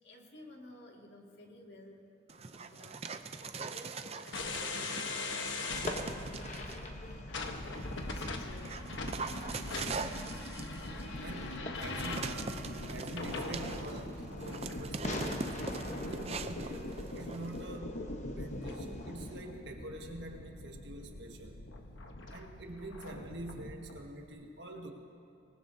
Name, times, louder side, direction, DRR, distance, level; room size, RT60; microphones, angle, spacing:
voice 1, 0.0-5.8 6.4-8.8 9.4-10.4 10.8-11.6, left 1 dB, 60° left, -1 dB, 2.2 m, -55 dB
Dog, 2.3-5.2 5.7-6.8 7.4-17.8, right 4 dB, 30° right, 0.5 m, -43 dB
sound 1, 4.3-24.0, left 2 dB, 80° left, 1.2 m, -41 dB
Fireworks, 5.1-19.4, left 2 dB, 35° left, 1.1 m, -46 dB
voice 2, 11.2-18.0 18.3-21.7 22.3-24.9, right 2 dB, 65° right, 2 dB, 1.7 m, -46 dB
25.5 x 19.5 x 2.8 m, 2.8 s
head